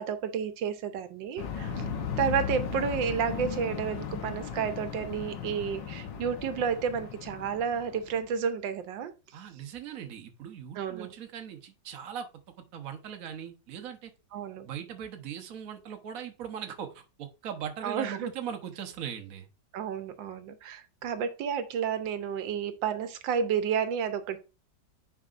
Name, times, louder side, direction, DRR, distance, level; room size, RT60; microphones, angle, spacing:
voice 1, 0.0-1.8 2.2-9.1 10.8-11.1 14.3-14.7 17.8-18.3 19.7-24.4, right 7 dB, 85° right, 10 dB, 1.5 m, -31 dB
sound 1, 1.4-8.2, left 7 dB, 75° left, 1.6 m, -36 dB
voice 2, 9.3-12.3 12.7-14.1 14.6-19.5, right 8 dB, 55° right, 6 dB, 1.3 m, -39 dB
9.6 x 4.8 x 2.5 m, 0.30 s
omnidirectional pair, 2.0 m